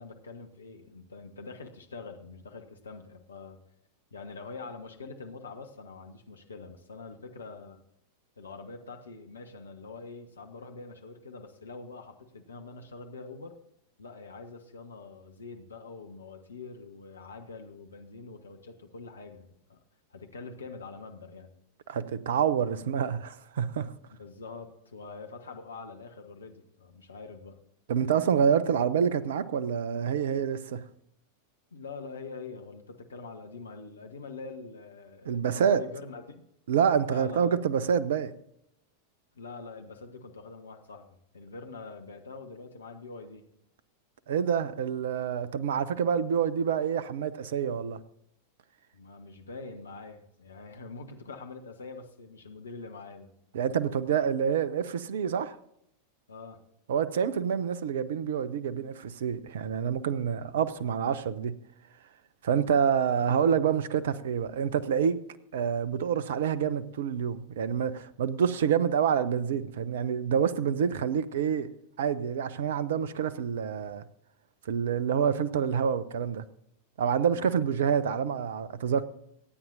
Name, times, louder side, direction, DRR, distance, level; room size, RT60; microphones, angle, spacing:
voice 1, 0.0-3.6 4.1-7.8 8.4-13.5 14.0-19.8 20.1-21.5 24.2-27.6 31.7-36.4 37.1-37.6 39.4-43.5 48.9-53.3 56.3-56.6 77.3-77.8, left 4 dB, 70° left, 1.1 m, -44 dB
voice 2, 21.9-23.9 27.9-30.8 35.3-35.8 36.7-38.3 44.3-48.0 53.5-55.6 56.9-61.6 62.4-65.2 65.5-71.7 72.0-74.0 74.7-76.4 77.0-79.0, right 7 dB, 60° right, 0.6 m, -27 dB
24.0 x 9.2 x 2.6 m
figure-of-eight pair, 90°, 0 cm